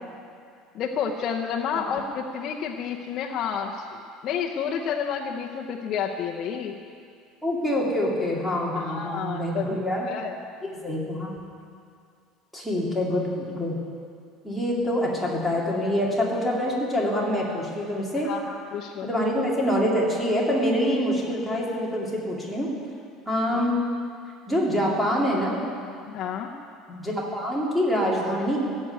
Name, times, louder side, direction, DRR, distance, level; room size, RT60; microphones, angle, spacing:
voice 1, 0.7-3.9 4.2-6.8 8.8-10.4 18.2-19.1 26.1-26.5, left 7 dB, 40° left, -1 dB, 0.8 m, -30 dB
voice 2, 7.4-10.1 10.7-11.3 12.5-13.8 14.4-18.3 19.0-22.7 23.3-23.7 24.5-25.6 26.9-28.6, equal, ahead, -5 dB, 2.4 m, -25 dB
14.0 x 7.7 x 9.2 m, 2.3 s
cardioid pair, 160°, 0 cm